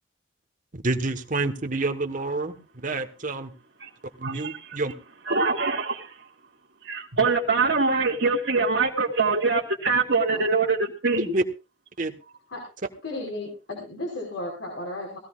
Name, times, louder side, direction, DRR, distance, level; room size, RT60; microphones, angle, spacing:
voice 1, 0.8-3.5 4.2-4.9 11.1-11.4 12.0-12.1, right 2 dB, 45° right, 1.4 m, -28 dB
voice 2, 4.2-4.8 5.3-6.1 6.8-11.3, right 4 dB, 60° right, 2.2 m, -24 dB
voice 3, 13.0-15.2, left 1 dB, 70° left, 5.2 m, -34 dB
20.0 x 16.0 x 2.5 m
head